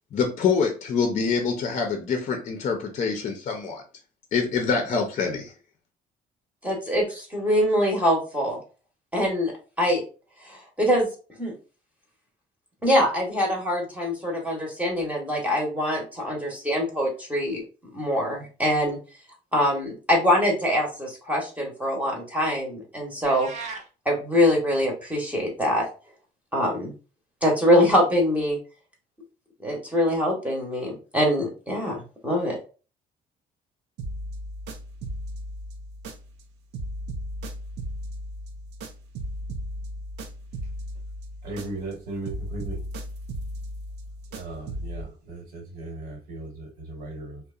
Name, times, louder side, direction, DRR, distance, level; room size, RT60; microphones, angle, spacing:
voice 1, 0.1-3.8 4.3-5.5, left 5 dB, 45° left, 3 dB, 0.5 m, -25 dB
voice 2, 6.6-8.6 9.1-9.5 9.8-10.0 10.5-11.1 11.4-11.5 12.8-17.6 17.9-19.0 19.5-23.5 24.1-25.9 26.5-26.9 27.4-28.6 29.6-32.6, equal, 10° right, -1 dB, 0.8 m, -24 dB
sound 1, 23.2-23.9, right 4 dB, 45° right, 0.7 m, -36 dB
sound 2, 34.0-36.5 36.7-42.0 42.2-45.0, equal, 90° right, 0.5 m, -36 dB
voice 3, 41.4-42.8 44.3-47.4, right 2 dB, 70° right, 1 dB, 1.1 m, -37 dB
2.8 x 2.1 x 2.3 m, 0.36 s
cardioid pair, 110°, 17 cm